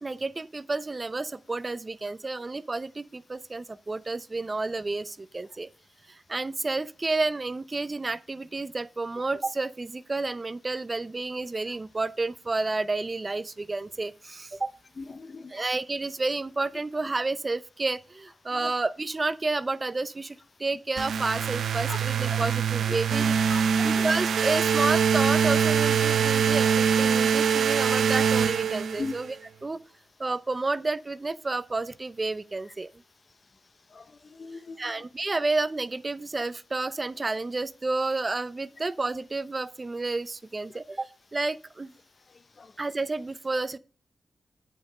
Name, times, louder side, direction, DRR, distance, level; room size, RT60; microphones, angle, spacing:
voice 1, 0.0-5.7 6.1-14.7 15.5-23.3 23.8-29.4 29.6-29.8 30.2-32.9 34.8-41.9 42.8-43.8, right 3 dB, 35° right, 0.7 m, -30 dB
voice 2, 15.0-15.6 22.3-22.4 23.5-24.0 29.0-29.1 33.9-34.0 34.4-34.8 42.6-42.7, left 4 dB, 50° left, 0.8 m, -38 dB
sound 1, 21.0-29.3, right 7 dB, 85° right, 0.6 m, -24 dB
9.6 x 5.2 x 5.5 m
cardioid pair, 65°, 0 cm